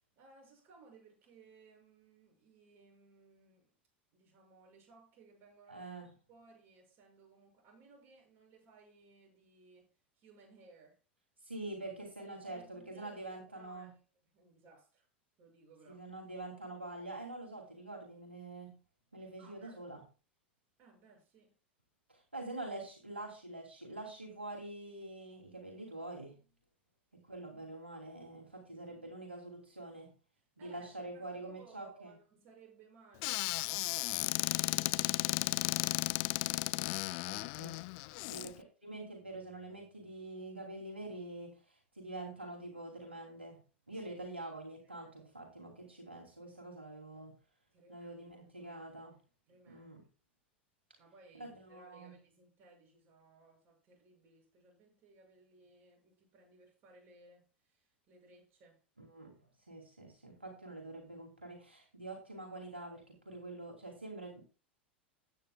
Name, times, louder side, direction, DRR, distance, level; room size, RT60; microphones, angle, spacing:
voice 1, 0.2-3.7 4.1-5.9 6.3-11.0 12.2-14.0 14.3-15.1 15.4-16.1 19.4-19.8 20.8-21.5 30.6-36.4 38.2-38.5 43.9-44.0 45.0-45.3 47.7-48.1 48.4-48.8 49.5-50.0 51.0-58.8, right 4 dB, 40° right, 6.6 m, -62 dB
voice 2, 5.7-6.1 11.4-13.9 15.9-18.7 19.1-20.0 22.1-26.4 27.1-30.1 30.6-32.1 37.2-37.8 38.2-43.6 43.9-47.4 47.9-49.2 49.7-50.0 51.3-52.1 59.0-64.4, right 2 dB, 90° right, 2.8 m, -46 dB
Squeak / Cupboard open or close, 33.2-38.5, left 24 dB, 50° left, 0.4 m, -34 dB
15.0 x 9.5 x 2.3 m
figure-of-eight pair, 85°, 6 cm